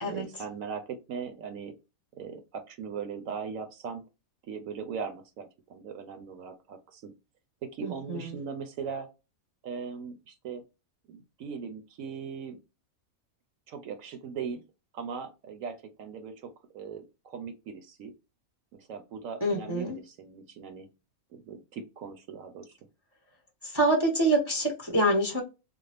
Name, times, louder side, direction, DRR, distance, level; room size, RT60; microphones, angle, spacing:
voice 1, 0.1-1.7 2.2-4.0 4.5-7.1 7.6-9.1 9.6-10.6 11.1-12.6 13.7-14.6 14.9-18.1 18.7-20.9 21.3-22.8, right 6 dB, 70° right, 7 dB, 1.0 m, -39 dB
voice 2, 7.8-8.3 19.4-20.0 23.6-25.4, right 1 dB, 25° right, 1 dB, 0.6 m, -26 dB
3.5 x 2.0 x 3.2 m, 0.28 s
omnidirectional pair, 1.5 m